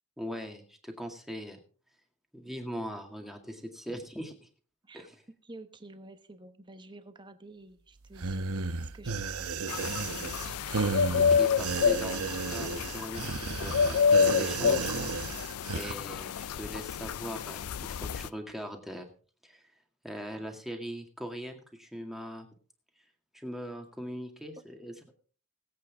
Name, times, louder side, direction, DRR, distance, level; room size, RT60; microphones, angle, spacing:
voice 1, 0.2-1.6 2.3-4.5 4.9-5.2 11.1-14.9 15.7-19.1 19.4-19.6 20.0-22.5 23.3-25.1, equal, ahead, 3 dB, 2.0 m, -40 dB
voice 2, 5.4-9.5, right 2 dB, 20° right, 9 dB, 1.1 m, -50 dB
sound 1, 8.1-15.9, right 4 dB, 80° right, 0.9 m, -33 dB
sound 2, 9.7-18.3, left 6 dB, 85° left, 0.5 m, -28 dB
20.5 x 8.4 x 3.5 m, 0.41 s
head